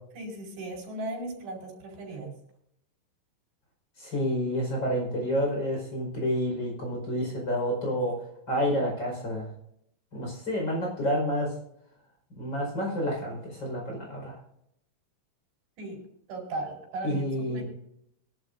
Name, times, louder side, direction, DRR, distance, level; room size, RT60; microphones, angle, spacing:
voice 1, 0.1-2.3 15.8-16.0 16.3-17.3 17.5-17.6, right 2 dB, 80° right, 0 dB, 6.7 m, -36 dB
voice 2, 4.0-8.2 8.5-9.5 10.1-11.5 12.4-14.4 17.0-17.6, equal, 25° left, 0 dB, 5.2 m, -29 dB
22.5 x 12.0 x 2.6 m, 0.76 s
omnidirectional pair, 4.9 m